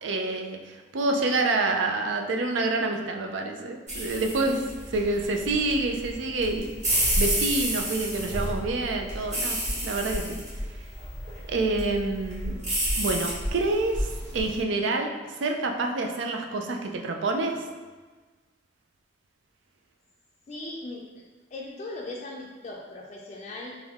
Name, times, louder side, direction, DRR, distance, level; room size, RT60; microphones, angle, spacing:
voice 1, 0.0-4.6 4.9-6.7 7.2-10.2 11.5-12.6 13.0-15.1 15.4-17.6, right 2 dB, 85° right, 3 dB, 0.5 m, -27 dB
sound 1, 3.9-14.6, equal, 40° right, 1.5 m, -30 dB
voice 2, 20.5-21.2 21.5-23.8, left 2 dB, 40° left, -2 dB, 0.4 m, -38 dB
3.5 x 3.1 x 3.5 m, 1.3 s
head